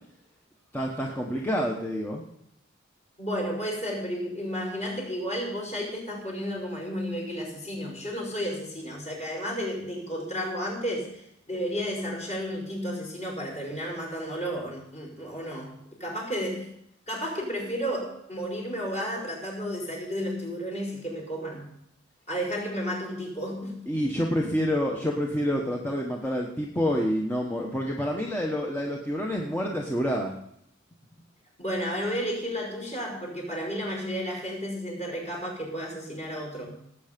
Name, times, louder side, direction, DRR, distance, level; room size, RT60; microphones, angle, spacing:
voice 1, 0.7-2.2 23.9-30.4, equal, 10° left, -1 dB, 1.2 m, -28 dB
voice 2, 3.2-16.7 17.1-21.7 22.3-23.8 31.6-36.8, equal, 35° left, -2 dB, 5.4 m, -32 dB
18.0 x 8.6 x 5.2 m, 0.74 s
head